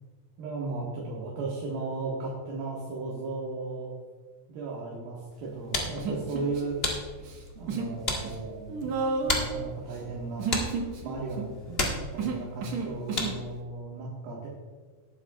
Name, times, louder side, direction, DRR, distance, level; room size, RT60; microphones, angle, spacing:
voice 1, 0.4-3.9 4.5-6.8 7.6-10.5 11.0-14.5, right 3 dB, 85° right, -5 dB, 3.4 m, -36 dB
sound 1, 5.3-13.6, left 1 dB, 90° left, 0.5 m, -35 dB
Human voice, 6.0-6.9 7.2-8.0 8.2-13.4, right 4 dB, 60° right, 2.4 m, -33 dB
18.5 x 9.0 x 2.4 m, 1.5 s
omnidirectional pair, 4.0 m